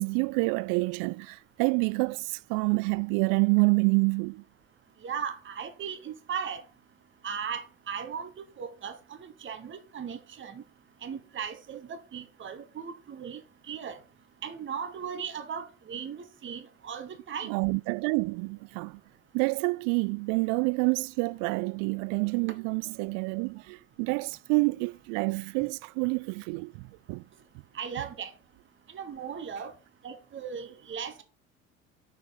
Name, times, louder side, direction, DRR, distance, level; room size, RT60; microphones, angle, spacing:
voice 1, 0.0-4.4 17.4-19.0 19.3-27.2, right 30 dB, 50° right, 0.5 m, -28 dB
voice 2, 5.0-6.6 7.2-10.6 11.0-13.4 13.7-14.0 14.4-17.6 27.7-28.3 28.9-29.7 30.0-31.2, right 7 dB, 30° right, 1.3 m, -37 dB
6.8 x 4.8 x 5.8 m
figure-of-eight pair, 65°, 41 cm